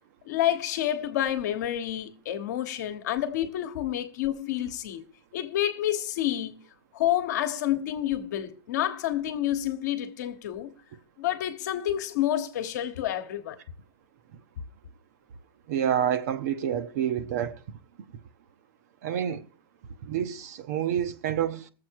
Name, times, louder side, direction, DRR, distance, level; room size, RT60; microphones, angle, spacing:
voice 1, 0.2-5.0 5.3-6.6 6.9-10.7 11.2-13.6, left 12 dB, 45° left, 1.2 m, -29 dB
voice 2, 15.7-17.6 19.0-19.5 20.0-21.7, right 9 dB, 40° right, 0.9 m, -28 dB
19.0 x 7.6 x 4.7 m
hypercardioid pair, 170°, 13 cm